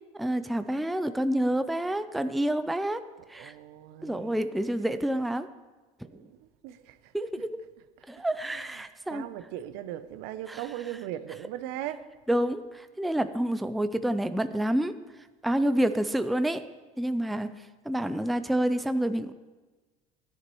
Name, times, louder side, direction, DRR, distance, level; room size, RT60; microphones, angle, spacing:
voice 1, 0.2-3.0 3.3-3.5 4.0-5.5 7.1-7.5 8.1-9.2 10.5-10.6 12.3-15.0 15.4-16.7 17.0-17.5 17.9-19.3, right 1 dB, ahead, 0.3 m, -28 dB
voice 2, 3.3-4.4 6.1-7.5 8.0-8.1 8.4-12.1, right 12 dB, 75° right, 0.7 m, -39 dB
14.5 x 10.5 x 3.1 m
supercardioid pair, 110°, 17 cm